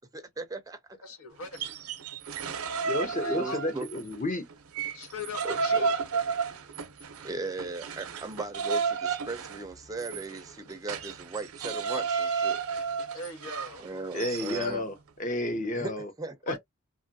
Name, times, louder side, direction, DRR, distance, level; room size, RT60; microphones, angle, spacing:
voice 1, 0.1-0.8 3.3-3.9 5.4-5.9 7.2-12.6 13.8-14.9 15.7-16.6, right 2 dB, 15° right, 0.4 m, -38 dB
voice 2, 1.0-1.7 3.2-3.6 4.9-6.1 13.1-13.9 16.5-16.6, left 4 dB, 80° left, 1.0 m, -40 dB
sound 1, 1.4-4.2 4.5-14.8, right 5 dB, 90° right, 0.6 m, -32 dB
voice 3, 2.8-4.4 14.1-14.9 15.2-16.1 16.5-16.6, left 1 dB, 35° left, 0.7 m, -31 dB
2.9 x 2.3 x 2.6 m
head